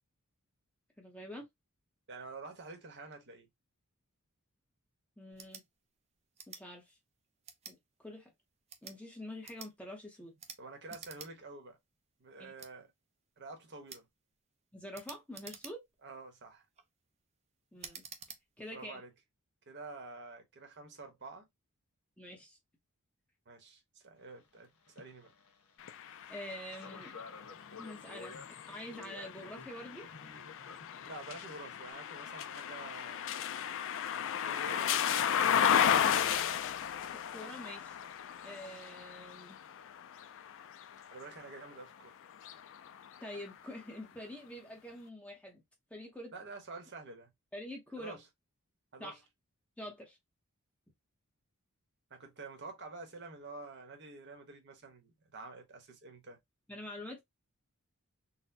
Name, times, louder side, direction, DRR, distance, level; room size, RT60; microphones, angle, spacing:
voice 1, 1.0-1.5 5.2-5.6 6.5-6.9 7.7-8.3 8.8-10.3 12.4-12.5 14.7-15.8 17.7-18.0 18.6-19.0 22.2-22.6 26.3-27.1 27.8-28.3 28.7-30.1 37.3-39.6 43.2-45.6 45.9-46.3 47.5-48.2 49.0-49.2 49.8-50.2 56.7-57.2, left 1 dB, 5° left, 0.8 m, -46 dB
voice 2, 2.1-3.5 10.6-11.8 12.2-12.9 13.4-14.1 16.0-16.6 18.7-19.1 19.7-21.4 23.5-25.3 31.1-33.4 34.4-35.7 41.1-42.1 46.3-47.3 48.0-48.2 48.9-49.2 52.1-56.4, right 3 dB, 55° right, 1.1 m, -48 dB
sound 1, 5.3-5.7 6.4-6.6 7.4-7.8 8.6-9.0 9.4-9.7 10.4-10.6 10.9-11.3 11.7-11.8 12.6-12.7 13.9-14.1 14.9-16.0 16.6-16.9 17.8-18.4, right 6 dB, 30° right, 0.6 m, -49 dB
sound 2, 24.4-24.6 24.8-31.9, left 4 dB, 85° left, 1.2 m, -52 dB
sound 3, 25.8-41.7 42.3-43.5, left 9 dB, 60° left, 0.4 m, -34 dB
4.1 x 2.2 x 2.7 m
head